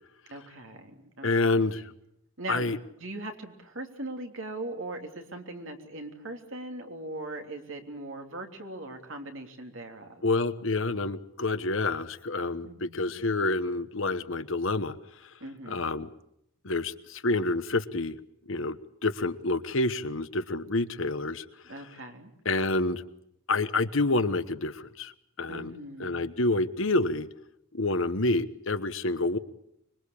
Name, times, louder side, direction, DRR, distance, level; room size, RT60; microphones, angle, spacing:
voice 1, 0.3-1.6 2.4-2.7 3.0-10.2 12.6-13.2 15.4-15.8 21.6-22.3 25.5-26.3, right 2 dB, 60° right, 4 dB, 3.3 m, -40 dB
voice 2, 1.2-1.9 2.5-2.8 10.2-15.0 15.2-15.3 15.7-16.1 16.6-18.2 18.5-21.4 22.4-23.0 23.5-25.1 25.4-27.3 27.7-29.4, left 2 dB, 60° left, 12 dB, 1.2 m, -28 dB
25.5 x 22.5 x 8.6 m, 0.77 s
head